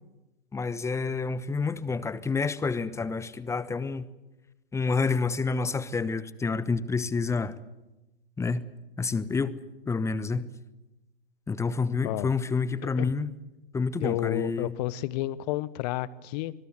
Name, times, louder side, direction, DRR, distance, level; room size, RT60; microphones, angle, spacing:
voice 1, 0.5-4.1 4.7-7.5 8.4-8.7 9.0-9.6 9.9-10.5 11.5-13.3 13.7-14.7, left 4 dB, 10° left, 1.0 m, -28 dB
voice 2, 12.8-13.1 14.0-16.5, left 15 dB, 45° left, 1.1 m, -31 dB
25.0 x 21.5 x 8.0 m
figure-of-eight pair, 105°, 30 cm